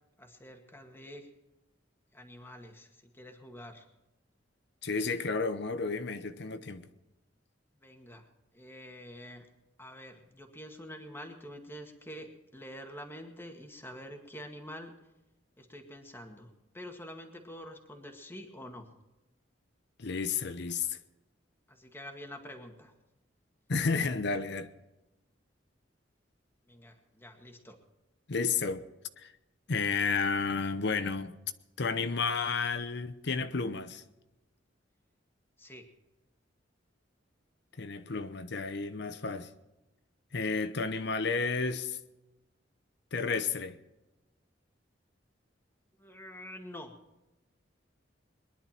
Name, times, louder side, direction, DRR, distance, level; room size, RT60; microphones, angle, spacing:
voice 1, 0.2-1.3 2.1-3.9 7.8-8.3 8.5-9.5 9.8-15.0 15.6-18.9 21.7-22.9 26.7-27.8 35.6-35.8 46.0-46.9, equal, 10° left, 2.0 m, -47 dB
voice 2, 4.8-6.9 20.0-21.0 23.7-24.7 28.3-28.8 29.2-29.3 29.7-31.4 31.8-34.0 37.8-39.5 40.3-42.0 43.1-43.8, left 4 dB, 65° left, 0.9 m, -31 dB
22.0 x 11.0 x 4.5 m
head